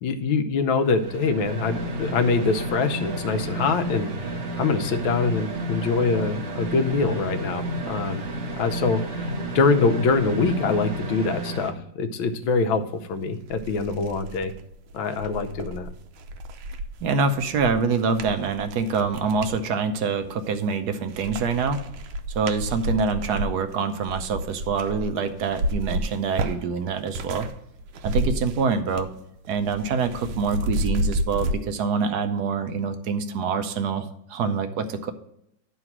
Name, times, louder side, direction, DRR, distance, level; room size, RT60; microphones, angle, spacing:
voice 1, 0.0-8.2 8.6-14.5 14.9-15.9, left 4 dB, 90° left, 7 dB, 1.6 m, -24 dB
sound 1, 0.8-11.7, right 1 dB, 45° right, 0.9 m, -31 dB
sound 2, 12.9-13.0 13.4-19.6 20.2-20.8 21.1-27.5 27.8-29.2 29.4-31.6, right 1 dB, 90° right, 1.5 m, -31 dB
voice 2, 17.0-21.8 22.3-27.5 28.0-29.1 29.5-35.1, right 5 dB, 65° right, 9 dB, 1.1 m, -25 dB
11.0 x 4.0 x 5.9 m, 0.77 s
omnidirectional pair, 2.1 m